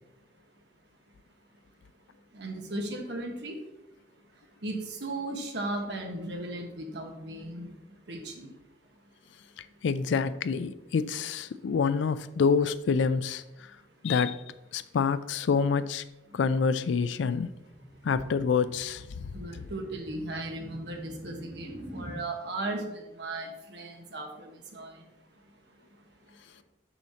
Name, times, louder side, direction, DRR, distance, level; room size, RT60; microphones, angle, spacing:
voice 1, 2.3-3.6 4.6-7.7 8.1-8.5 19.3-25.0, right 2 dB, 65° right, 2 dB, 1.2 m, -36 dB
voice 2, 9.8-13.4 14.0-14.4 14.7-16.0 16.3-17.6 18.0-19.3, left 5 dB, 75° left, 14 dB, 0.4 m, -27 dB
sound 1, 16.9-22.2, right 1 dB, 10° right, 1.3 m, -47 dB
7.0 x 6.3 x 2.8 m, 0.93 s
head